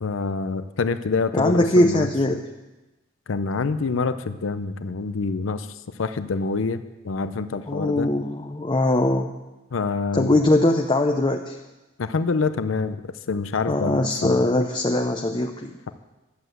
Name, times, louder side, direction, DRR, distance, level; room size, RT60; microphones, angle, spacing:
voice 1, 0.0-2.4 3.3-5.7 6.0-8.1 9.7-10.3 12.0-13.0 13.3-14.4, left 4 dB, 85° left, 11 dB, 0.6 m, -26 dB
voice 2, 1.3-2.5 7.7-9.3 10.1-11.6 13.7-15.7, left 1 dB, 25° left, 4 dB, 0.6 m, -21 dB
11.5 x 7.8 x 7.9 m, 1.1 s
head